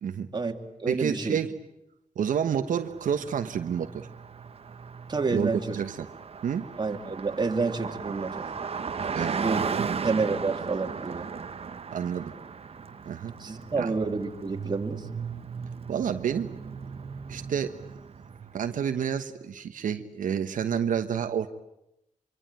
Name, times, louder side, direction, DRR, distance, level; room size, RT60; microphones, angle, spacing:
voice 1, 0.3-1.4 5.1-5.8 6.8-8.5 9.4-9.6 10.0-11.3 13.4-15.1, right 4 dB, 35° right, 3 dB, 2.6 m, -29 dB
voice 2, 0.9-1.5 2.2-4.1 5.3-6.1 6.4-6.7 9.1-9.4 9.7-10.0 11.9-12.3 13.0-13.3 13.8-13.9 15.9-16.5 17.3-17.8 18.5-21.5, right 8 dB, 90° right, 7 dB, 1.2 m, -29 dB
Car passing by, 2.7-18.8, right 5 dB, 50° right, 1.1 m, -36 dB
25.0 x 25.0 x 9.0 m, 0.86 s
wide cardioid pair, 100°, 13 cm